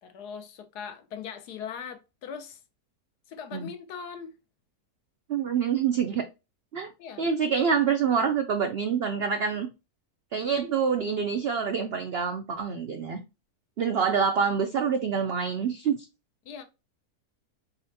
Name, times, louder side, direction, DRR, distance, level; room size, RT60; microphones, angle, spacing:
voice 1, 0.0-2.6 3.3-4.4 7.0-7.3 16.4-16.6, left 7 dB, 85° left, 1.3 m, -40 dB
voice 2, 5.3-6.2 6.7-6.9 7.2-9.7 10.3-13.2 13.8-16.1, right 6 dB, 80° right, 0.5 m, -26 dB
4.2 x 4.0 x 2.6 m
omnidirectional pair, 1.7 m